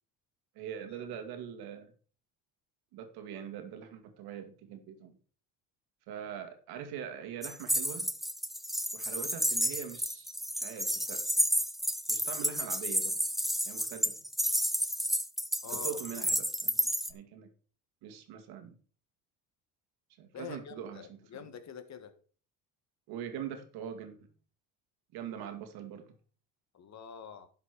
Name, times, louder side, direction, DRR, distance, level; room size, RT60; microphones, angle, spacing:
voice 1, 0.5-1.9 2.9-5.2 6.1-8.1 8.9-11.2 12.1-13.2 13.6-14.2 15.7-17.5 18.0-18.7 20.2-21.5 23.1-24.3 25.1-26.1, right 9 dB, 75° right, 2.3 m, -43 dB
sound 1, 7.4-17.1, equal, ahead, 0.6 m, -31 dB
voice 2, 15.6-16.0 20.3-22.1 26.7-27.5, left 7 dB, 45° left, 1.6 m, -46 dB
11.0 x 5.9 x 4.7 m
supercardioid pair, 90°, 38 cm